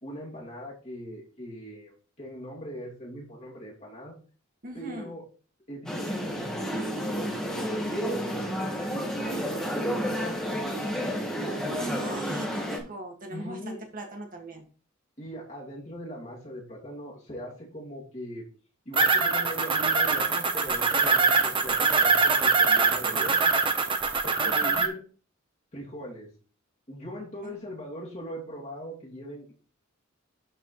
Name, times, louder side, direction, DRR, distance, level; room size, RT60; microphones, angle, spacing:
voice 1, 0.0-1.9 2.2-4.2 4.7-5.2 5.7-10.6 13.3-13.9 15.2-18.4 18.8-23.5 24.2-25.0 25.7-26.3 26.9-29.5, equal, 35° left, -4 dB, 2.6 m, -40 dB
voice 2, 4.6-5.1 11.7-14.6 24.6-24.8 27.4-27.6, right 1 dB, 40° right, 2 dB, 1.9 m, -40 dB
sound 1, 5.9-12.8, equal, 5° left, 1.7 m, -31 dB
sound 2, 18.9-24.9, right 4 dB, 25° right, 0.9 m, -23 dB
12.0 x 4.8 x 3.1 m, 0.38 s
head